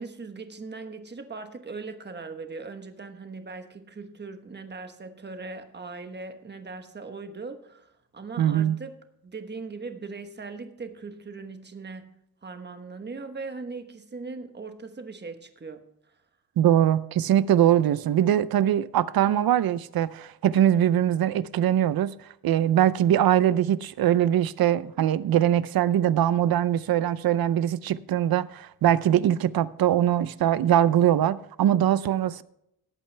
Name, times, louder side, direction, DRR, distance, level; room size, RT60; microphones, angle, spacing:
voice 1, 0.0-8.9 9.2-12.1 12.4-15.9, right 4 dB, 25° right, 1.2 m, -39 dB
voice 2, 8.4-8.8 16.6-22.1 22.4-32.4, right 11 dB, 70° right, 0.6 m, -22 dB
17.5 x 8.7 x 3.3 m
wide cardioid pair, 145°, 38 cm